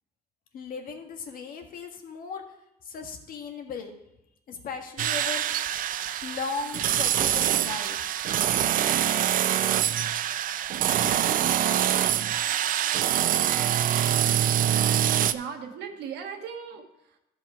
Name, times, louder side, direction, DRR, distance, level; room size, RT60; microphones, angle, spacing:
voice 1, 0.5-2.4 2.8-3.9 4.5-5.4 6.2-8.0, left 5 dB, 55° left, 4 dB, 1.6 m, -36 dB
sound 1, 5.0-15.3, right 11 dB, 55° right, 0.5 m, -25 dB
voice 2, 15.3-17.2, right 7 dB, 80° right, 4 dB, 1.4 m, -38 dB
13.5 x 5.4 x 4.8 m, 0.89 s
cardioid pair, 110°, 17 cm